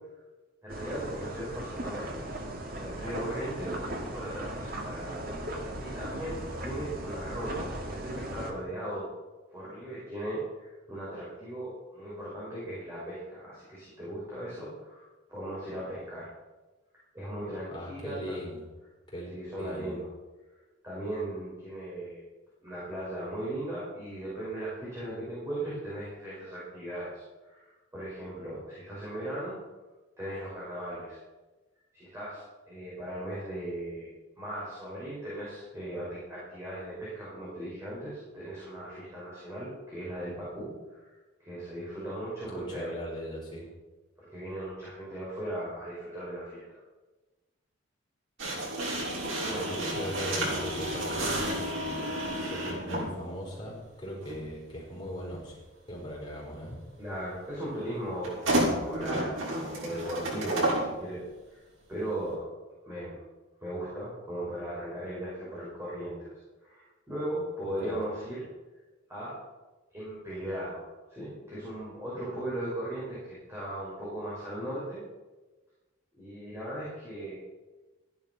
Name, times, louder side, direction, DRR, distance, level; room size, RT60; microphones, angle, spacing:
voice 1, 0.6-2.4 2.7-3.8 4.0-5.2 5.8-9.1 9.5-16.3 17.1-18.3 19.3-20.1 20.8-22.2 22.6-29.6 30.2-31.2 31.9-34.1 34.4-42.9 44.2-46.8 49.4-49.8 57.0-61.2 61.5-61.6 61.9-62.5 62.8-63.2 63.6-66.3 66.6-68.5 69.1-69.4 69.9-75.0 76.1-77.4, right 1 dB, 15° right, -8 dB, 5.6 m, -38 dB
sound 1, 0.7-8.5, right 1 dB, 50° right, 2.1 m, -37 dB
voice 2, 17.7-18.6 19.1-19.3 19.6-20.0 42.5-43.7 49.6-53.7 54.0-55.6 55.9-56.8 67.8-68.0, equal, 25° left, -4 dB, 5.6 m, -39 dB
sound 2, 48.4-53.1 54.2-54.4 58.2-60.9, right 1 dB, 85° right, 6.4 m, -31 dB
14.0 x 11.0 x 6.1 m, 1.2 s
head